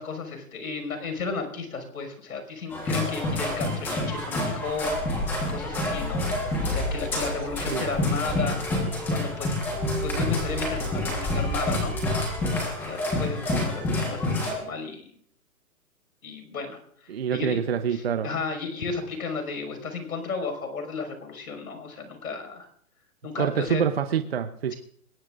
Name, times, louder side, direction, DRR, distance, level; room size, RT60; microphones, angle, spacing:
voice 1, 0.0-6.2 6.7-8.7 9.1-9.5 10.0-12.0 12.8-15.1 16.2-17.6 17.9-22.7 23.2-23.8, left 4 dB, 85° left, 6 dB, 5.9 m, -34 dB
sound 1, 2.7-14.5, left 1 dB, 5° left, 1.3 m, -28 dB
voice 2, 17.1-18.3 23.4-24.7, right 8 dB, 45° right, 9 dB, 0.7 m, -26 dB
22.0 x 18.5 x 2.5 m, 0.64 s
hypercardioid pair, 175°, 44 cm